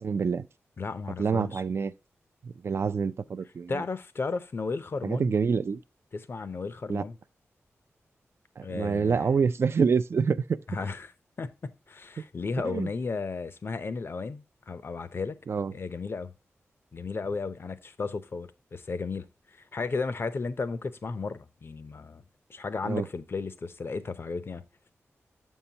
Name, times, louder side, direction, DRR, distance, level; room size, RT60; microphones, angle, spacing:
voice 1, 0.0-0.5 1.2-1.9 2.4-3.8 5.0-5.8 6.9-7.0 8.6-10.6 12.6-12.9 15.5-15.7 22.9-23.1, right 5 dB, 55° right, 0.4 m, -27 dB
voice 2, 0.8-1.6 3.7-5.3 6.1-7.2 8.6-9.4 10.7-11.1 11.4-15.4 15.7-16.3 16.9-19.3 19.7-22.2 22.5-24.6, left 4 dB, 50° left, 0.6 m, -34 dB
6.8 x 5.6 x 2.8 m
wide cardioid pair, 85°, 5 cm